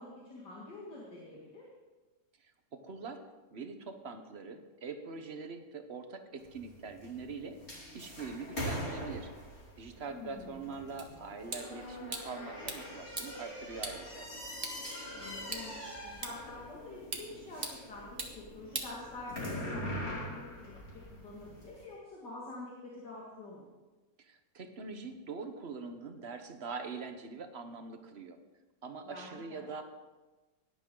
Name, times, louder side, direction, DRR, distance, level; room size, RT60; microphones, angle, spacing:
voice 1, 0.0-1.7 10.0-10.7 15.1-15.8 16.0-23.7 29.0-29.6, left 2 dB, 70° left, -5 dB, 2.8 m, -47 dB
voice 2, 2.4-3.2 3.5-7.6 7.9-9.3 9.8-14.3 24.2-28.4 28.8-29.8, right 4 dB, 45° right, 7 dB, 1.0 m, -43 dB
sound 1, 6.4-21.8, equal, 35° left, 3.1 m, -43 dB
sound 2, 11.0-19.6, right 2 dB, 25° right, 1.4 m, -45 dB
17.5 x 11.0 x 3.8 m, 1.2 s
omnidirectional pair, 1.9 m